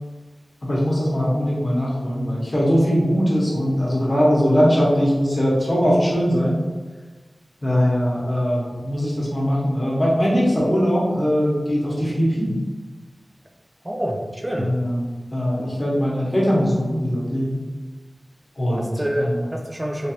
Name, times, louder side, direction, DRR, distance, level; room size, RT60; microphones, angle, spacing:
voice 1, 0.6-6.6 7.6-12.5 14.6-17.6 18.6-19.4, equal, 35° left, -6 dB, 1.0 m, -21 dB
voice 2, 13.8-14.7 18.8-20.1, equal, 20° right, 1 dB, 0.4 m, -27 dB
3.1 x 2.5 x 2.9 m, 1.3 s
wide cardioid pair, 75°, 0 cm